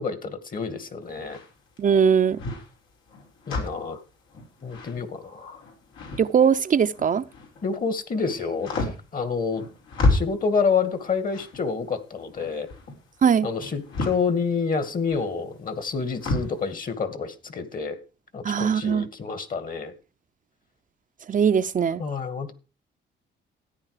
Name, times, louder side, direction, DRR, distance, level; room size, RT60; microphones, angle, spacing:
voice 1, 0.0-1.4 3.5-4.0 4.6-5.6 7.6-9.6 10.1-12.7 13.4-18.0 18.3-19.9 22.0-22.5, left 5 dB, 45° left, 2.2 m, -28 dB
sound 1, 1.0-7.7 8.0-16.6, left 2 dB, 85° left, 5.4 m, -31 dB
voice 2, 1.8-2.4 6.2-7.2 13.2-13.5 18.4-19.1 21.3-22.0, right 7 dB, 40° right, 0.7 m, -20 dB
14.0 x 9.9 x 5.0 m
cardioid pair, 90°, 20 cm